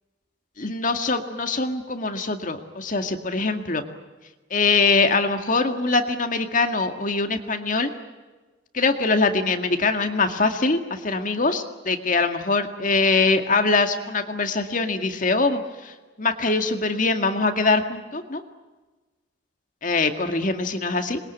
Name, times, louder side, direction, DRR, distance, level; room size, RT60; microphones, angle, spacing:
voice 1, 0.6-3.8 4.5-7.9 8.7-18.4 19.8-21.2, left 3 dB, 45° left, 6 dB, 2.1 m, -23 dB
26.0 x 22.0 x 9.4 m, 1.2 s
head